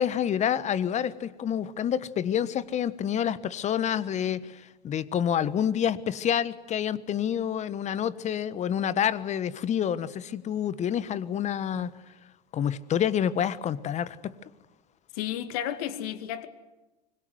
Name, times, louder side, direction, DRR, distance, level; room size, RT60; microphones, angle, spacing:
voice 1, 0.0-11.9 12.5-14.3, left 9 dB, 35° left, 1.4 m, -28 dB
voice 2, 15.1-16.5, left 11 dB, 60° left, 2.3 m, -32 dB
25.0 x 22.0 x 9.5 m
hypercardioid pair, 85°, 21 cm